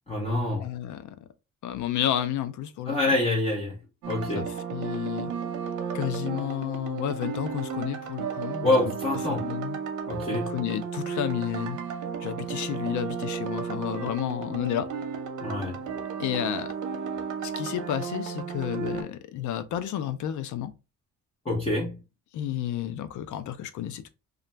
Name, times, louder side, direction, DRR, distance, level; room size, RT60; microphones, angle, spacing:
voice 1, 0.1-0.7 2.9-3.8 4.1-4.5 8.6-9.4 10.1-10.5 15.4-15.8 21.4-22.0, left 2 dB, 20° left, 0.8 m, -26 dB
voice 2, 0.6-1.1 1.6-3.1 4.4-5.3 5.9-8.7 9.3-9.8 10.3-11.8 12.2-14.9 16.2-16.7 17.4-20.7 22.3-24.1, left 11 dB, 75° left, 0.5 m, -31 dB
sound 1, 4.0-19.0, right 6 dB, 75° right, 0.7 m, -33 dB
2.4 x 2.2 x 3.1 m
cardioid pair, 90°, 30 cm